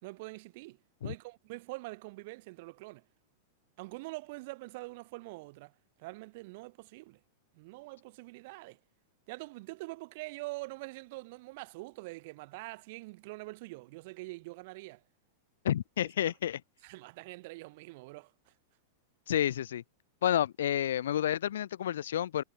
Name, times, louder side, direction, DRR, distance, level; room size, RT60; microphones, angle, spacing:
voice 1, 0.0-0.8 1.0-3.0 3.8-5.7 6.0-7.2 7.5-8.8 9.3-15.0 16.8-18.3, right 23 dB, 50° right, 3.5 m, -44 dB
voice 2, 15.6-16.6 19.3-19.8 20.2-22.4, left 11 dB, 90° left, 0.3 m, -30 dB
supercardioid pair, 155°, 0 cm